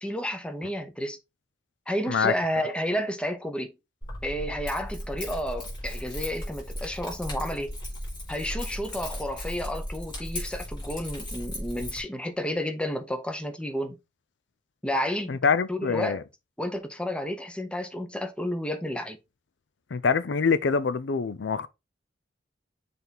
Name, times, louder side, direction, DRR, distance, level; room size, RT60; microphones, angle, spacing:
voice 1, 0.0-1.2 1.9-3.7 4.2-7.7 8.3-14.0 14.8-15.4 15.7-16.2 16.6-19.2, equal, 5° left, 0.8 m, -31 dB
Keys jangling, 4.0-12.0, equal, 25° left, 3.9 m, -36 dB
voice 2, 15.3-16.2 19.9-21.7, left 5 dB, 70° left, 0.5 m, -25 dB
6.8 x 3.5 x 4.0 m
head